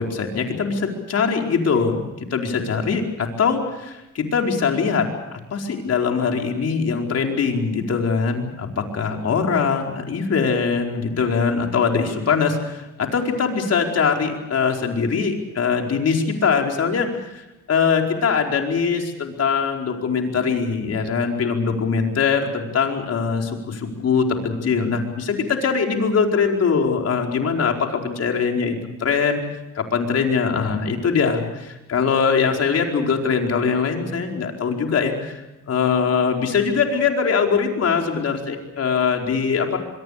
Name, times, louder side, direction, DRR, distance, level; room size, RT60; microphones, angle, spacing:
voice 1, 0.0-29.4 29.7-39.8, left 5 dB, 55° left, 2 dB, 4.8 m, -22 dB
25.0 x 23.0 x 6.7 m, 0.98 s
cardioid pair, 90°, 30 cm